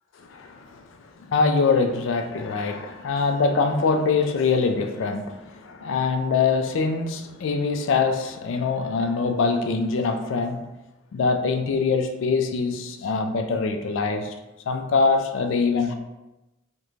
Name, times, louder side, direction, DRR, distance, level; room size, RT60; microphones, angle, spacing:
voice 1, 0.2-10.6 11.1-14.3 14.7-15.9, left 4 dB, 65° left, 6 dB, 0.3 m, -24 dB
3.0 x 2.2 x 2.4 m, 0.98 s
head